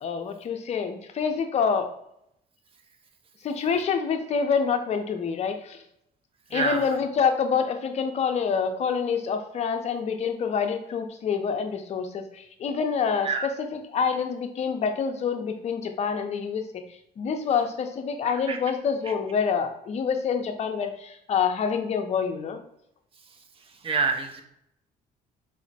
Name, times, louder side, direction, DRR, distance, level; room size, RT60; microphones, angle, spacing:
voice 1, 0.0-1.9 3.4-5.8 6.5-16.7 17.2-22.6, left 6 dB, 40° left, 6 dB, 0.5 m, -27 dB
voice 2, 6.5-6.9 13.2-13.5 18.5-18.6 23.8-24.4, right 4 dB, 35° right, 5 dB, 0.5 m, -26 dB
3.5 x 2.1 x 4.0 m, 0.76 s
cardioid pair, 110°, 17 cm